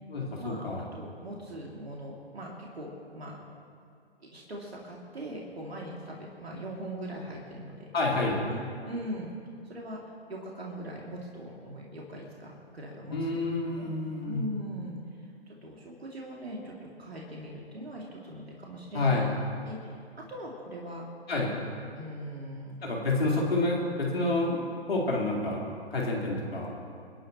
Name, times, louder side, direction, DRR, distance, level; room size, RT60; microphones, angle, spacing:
voice 1, 0.1-0.8 7.9-8.4 13.1-14.4 18.9-19.3 21.3-21.5 22.8-24.6 24.9-25.6 25.9-26.7, left 2 dB, 70° left, -4 dB, 4.3 m, -28 dB
voice 2, 0.9-3.4 4.3-8.2 8.5-8.6 8.8-9.3 9.6-10.0 10.3-13.5 13.8-13.9 14.2-16.7 17.0-19.2 19.6-21.0 21.9-22.8, equal, 75° right, -3 dB, 2.8 m, -41 dB
29.0 x 10.5 x 3.1 m, 2.3 s
figure-of-eight pair, 125°, 32 cm